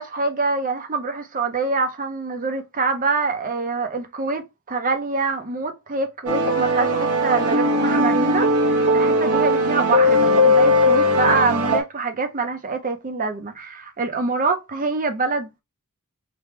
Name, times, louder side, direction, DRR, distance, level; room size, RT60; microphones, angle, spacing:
voice 1, 0.0-15.6, right 4 dB, 40° right, 0.7 m, -25 dB
sound 1, 6.3-11.8, left 1 dB, 85° right, 1.0 m, -18 dB
3.4 x 2.3 x 4.3 m
head